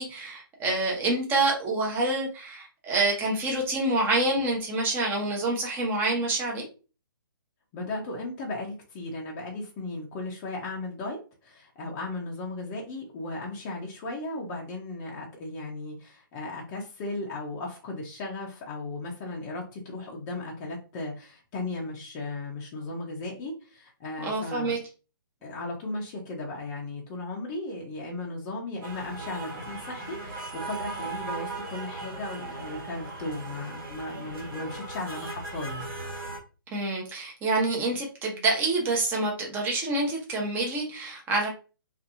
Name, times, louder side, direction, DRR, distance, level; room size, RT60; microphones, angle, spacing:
voice 1, 0.0-6.7 24.2-24.8 36.7-41.5, right 2 dB, 15° right, -1 dB, 0.9 m, -27 dB
voice 2, 7.7-24.8 25.4-35.9, left 2 dB, 25° left, -2 dB, 0.6 m, -36 dB
sound 1, 28.8-36.4, right 3 dB, 70° right, 1.3 m, -38 dB
2.6 x 2.5 x 2.5 m, 0.34 s
figure-of-eight pair, 135°, 12 cm